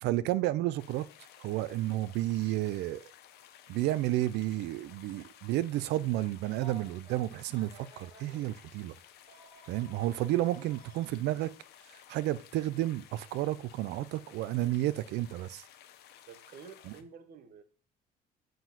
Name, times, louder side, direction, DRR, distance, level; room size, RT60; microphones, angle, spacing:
voice 1, 0.0-1.1 1.4-3.0 3.7-8.9 9.7-11.5 12.1-15.6 16.9-17.0, right 15 dB, 80° right, 0.4 m, -31 dB
sound 1, 0.8-17.0, left 11 dB, 75° left, 0.6 m, -56 dB
Telephone, 6.5-8.4 9.3-11.2 12.5-12.7 14.2-14.4, right 3 dB, 30° right, 1.4 m, -55 dB
voice 2, 16.3-17.6, right 6 dB, 60° right, 0.8 m, -50 dB
7.8 x 2.6 x 5.8 m
cardioid pair, 110°, 17 cm